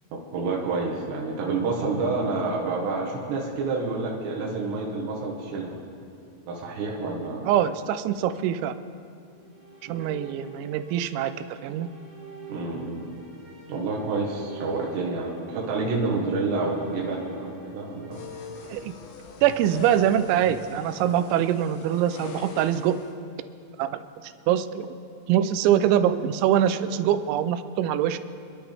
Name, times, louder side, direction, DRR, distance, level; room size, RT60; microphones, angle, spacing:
voice 1, 0.3-5.7 6.4-7.5 9.9-10.1 12.5-13.1 13.7-18.3, right 3 dB, 75° right, -2 dB, 3.6 m, -28 dB
voice 2, 7.4-8.8 9.8-11.3 11.6-11.9 18.7-18.9 19.4-23.0 23.8-24.9 25.3-28.2, right 10 dB, 90° right, 11 dB, 3.0 m, -24 dB
sound 1, 9.3-19.5, right 3 dB, 10° right, 2.6 m, -46 dB
sound 2, 18.1-23.1, left 5 dB, 75° left, 3.4 m, -42 dB
28.0 x 11.0 x 3.5 m, 2.4 s
omnidirectional pair, 5.2 m